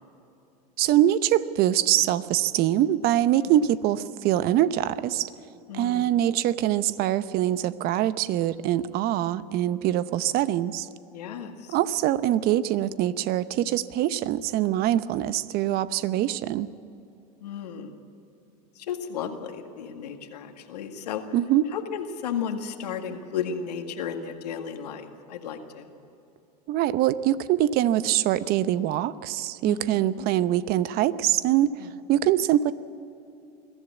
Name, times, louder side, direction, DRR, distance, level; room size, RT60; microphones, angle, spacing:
voice 1, 0.8-5.3 5.7-10.9 11.7-16.7 21.3-21.6 26.7-32.7, right 12 dB, 50° right, 15 dB, 0.8 m, -24 dB
voice 2, 5.7-6.2 11.1-11.8 17.4-18.0 18.8-21.2 21.7-25.9 29.7-30.3 31.8-31.9, left 7 dB, 85° left, 5 dB, 2.0 m, -34 dB
22.0 x 14.5 x 8.4 m, 2.8 s
hypercardioid pair, 100°, 20 cm